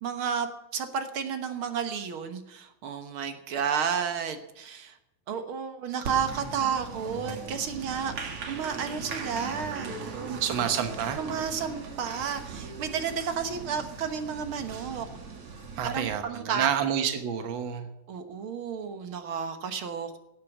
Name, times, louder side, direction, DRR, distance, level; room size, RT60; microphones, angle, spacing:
voice 1, 0.0-5.0 5.3-8.1 8.5-10.4 11.2-15.1 15.8-16.7 18.1-20.2, right 7 dB, 65° right, 8 dB, 1.3 m, -32 dB
Applause, 6.0-16.2, right 4 dB, 50° right, 2.4 m, -39 dB
voice 2, 10.4-11.2 15.8-17.9, right 8 dB, 80° right, 7 dB, 1.0 m, -28 dB
17.0 x 8.5 x 7.2 m, 0.89 s
omnidirectional pair, 3.9 m